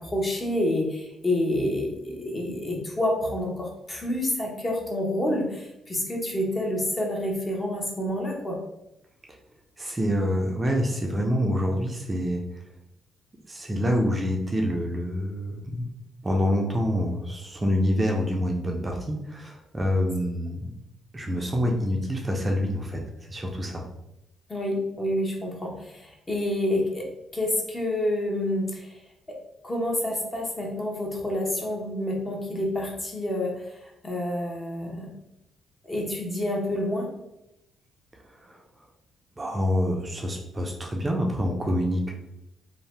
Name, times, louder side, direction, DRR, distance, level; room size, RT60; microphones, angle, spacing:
voice 1, 0.0-8.6 24.5-27.1 27.3-29.0 29.3-29.4 29.6-35.1 35.9-37.1, left 1 dB, 30° left, -1 dB, 0.8 m, -28 dB
voice 2, 9.8-12.6 13.5-15.9 16.2-20.7 21.1-23.0 23.3-23.9 38.2-38.6 39.4-42.1, equal, 25° right, 1 dB, 0.4 m, -26 dB
2.6 x 2.0 x 3.2 m, 0.87 s
cardioid pair, 90°, 0 cm